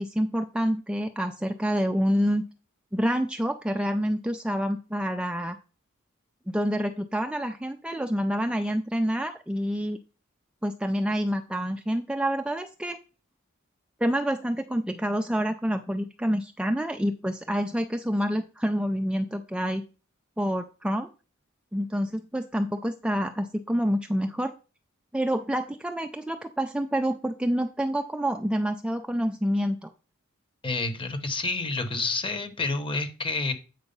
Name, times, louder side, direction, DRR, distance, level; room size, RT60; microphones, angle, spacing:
voice 1, 0.0-2.4 2.9-5.6 6.5-10.0 10.6-13.0 14.0-19.8 20.4-21.1 21.7-24.5 25.1-29.9, equal, 5° right, 6 dB, 0.3 m, -27 dB
voice 2, 30.6-33.5, left 3 dB, 25° left, 9 dB, 1.0 m, -29 dB
7.9 x 4.7 x 5.3 m, 0.35 s
head